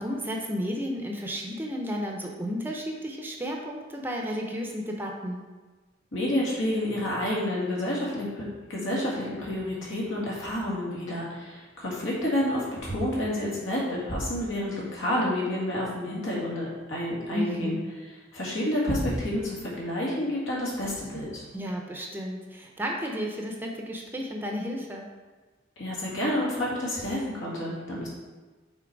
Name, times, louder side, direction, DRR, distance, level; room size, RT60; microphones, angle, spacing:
voice 1, 0.0-5.4 17.3-17.8 21.5-25.1, equal, 10° right, 0 dB, 0.7 m, -32 dB
voice 2, 6.1-17.8 18.3-21.5 25.8-28.1, left 1 dB, 75° left, -5 dB, 2.2 m, -29 dB
6.2 x 4.1 x 4.6 m, 1.3 s
head